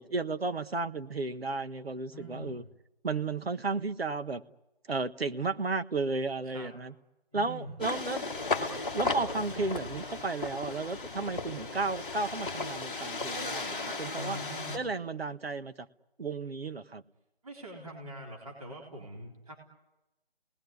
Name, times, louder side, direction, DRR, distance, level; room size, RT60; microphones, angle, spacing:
voice 1, 0.0-2.6 3.0-4.4 4.9-6.9 7.3-8.3 8.9-14.4 14.7-15.9 16.2-17.0, right 3 dB, 75° right, 10 dB, 1.4 m, -33 dB
voice 2, 2.1-2.6 6.5-6.7 7.3-7.7 14.1-14.8 17.4-19.5, equal, 35° right, -1 dB, 3.8 m, -43 dB
sound 1, 7.8-14.8, left 3 dB, 10° left, 1.4 m, -35 dB
28.5 x 19.5 x 9.6 m, 0.98 s
figure-of-eight pair, 180°, 30 cm